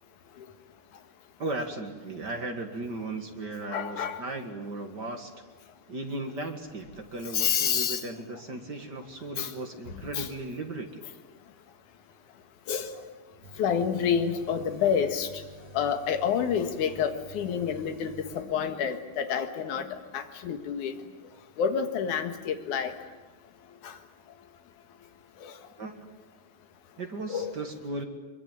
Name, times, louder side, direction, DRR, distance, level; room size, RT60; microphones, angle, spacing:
voice 1, 1.4-5.3 5.9-11.0 25.8-26.1 27.0-28.0, right 2 dB, 40° right, 4 dB, 1.6 m, -36 dB
voice 2, 3.7-4.2 7.3-8.0 9.4-9.5 10.1-10.3 12.7-13.0 13.6-15.3 15.7-19.9 20.1-20.9 21.6-22.9 23.8-24.0 25.4-25.5 27.3-27.5, left 7 dB, 60° left, 7 dB, 2.8 m, -28 dB
sound 1, 13.4-18.5, right 2 dB, 70° right, 5.8 m, -49 dB
23.5 x 23.0 x 9.2 m, 1.3 s
omnidirectional pair, 4.4 m